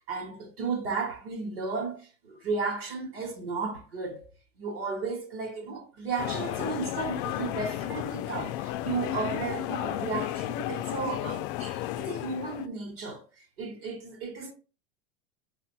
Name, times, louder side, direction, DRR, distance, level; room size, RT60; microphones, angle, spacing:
voice 1, 0.1-4.3 4.6-13.2 13.6-14.5, right 4 dB, 85° right, 2.7 m, -34 dB
sound 1, 6.2-12.7, left 14 dB, 60° left, 0.4 m, -33 dB
4.9 x 4.4 x 2.2 m
hypercardioid pair, 105°, 29 cm